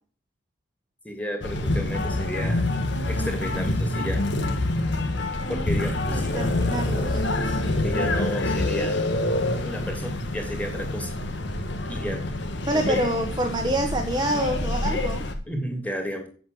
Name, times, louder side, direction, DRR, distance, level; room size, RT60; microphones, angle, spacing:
voice 1, 1.0-2.7 3.1-4.2 5.5-6.3 7.5-9.1 9.6-11.1 11.9-12.2 12.7-13.0 15.5-16.3, equal, 5° left, 3 dB, 2.8 m, -32 dB
sound 1, 1.4-15.3, left 1 dB, 60° left, 1.8 m, -26 dB
voice 2, 6.3-7.2 12.7-15.2, right 1 dB, 20° right, 3 dB, 1.2 m, -26 dB
8.4 x 8.1 x 7.9 m, 0.43 s
head